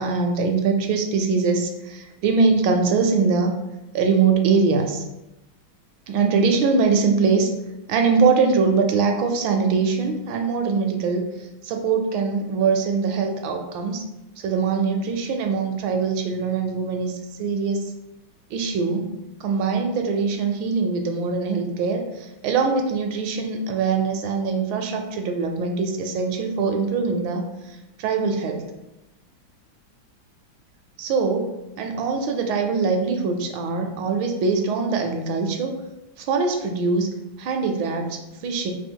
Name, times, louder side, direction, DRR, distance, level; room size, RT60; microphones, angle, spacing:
voice 1, 0.0-3.5 3.9-5.0 6.1-7.5 7.9-11.3 11.7-14.0 14.4-17.1 17.4-17.8 18.5-19.1 19.4-22.0 22.4-27.5 28.0-28.6 31.0-31.5 31.8-35.7 36.3-38.7, right 4 dB, 75° right, 4 dB, 1.3 m, -22 dB
5.3 x 2.7 x 3.6 m, 0.97 s
omnidirectional pair, 2.3 m